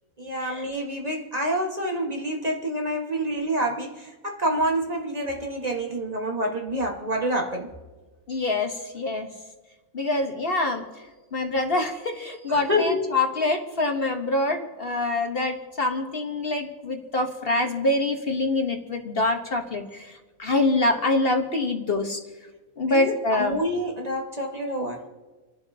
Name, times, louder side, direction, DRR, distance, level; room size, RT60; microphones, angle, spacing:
voice 1, 0.2-7.7 12.5-13.1 22.9-25.1, equal, 30° right, 0 dB, 1.5 m, -27 dB
voice 2, 8.3-9.3 9.9-10.8 11.3-20.1 20.4-22.2 22.8-23.6, left 2 dB, 45° left, 3 dB, 1.3 m, -25 dB
30.0 x 11.5 x 2.8 m, 1.3 s
omnidirectional pair, 1.5 m